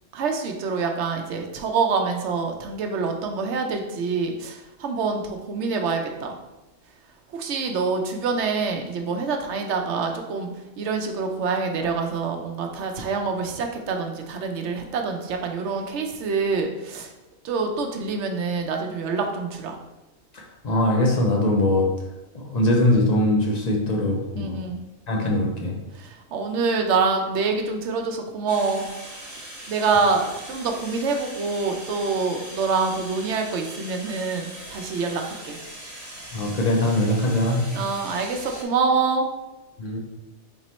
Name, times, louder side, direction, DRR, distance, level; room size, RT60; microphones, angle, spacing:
voice 1, 0.1-6.3 7.3-10.5 10.8-17.1 17.4-19.8 24.4-24.8 25.9-28.9 29.7-35.6 37.7-39.3, right 4 dB, 85° right, 4 dB, 0.9 m, -26 dB
voice 2, 20.3-21.9 22.3-24.6 25.1-25.8 36.3-37.7 39.8-40.0, left 1 dB, 45° left, 0 dB, 0.6 m, -22 dB
sound 1, 28.5-38.6, right 1 dB, 20° right, 0.7 m, -40 dB
3.7 x 3.0 x 4.1 m, 1.0 s
omnidirectional pair, 1.2 m